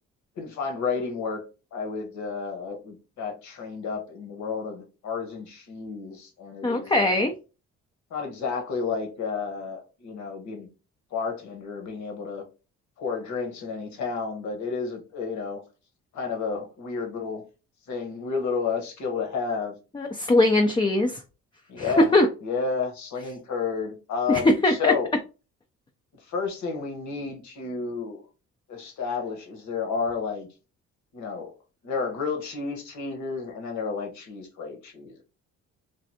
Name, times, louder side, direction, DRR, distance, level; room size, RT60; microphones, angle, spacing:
voice 1, 0.4-1.4 1.7-7.3 8.1-10.7 11.1-12.4 13.0-15.6 16.1-17.4 17.9-19.7 21.7-22.2 22.4-25.1 26.2-28.3 28.7-30.5 31.1-31.5 31.8-35.2, left 5 dB, 70° left, 1.1 m, -31 dB
voice 2, 6.6-7.3 19.9-21.2 21.8-22.3 24.3-24.9, left 2 dB, 15° left, 0.4 m, -21 dB
3.2 x 2.5 x 2.7 m
cardioid pair, 90°, 30 cm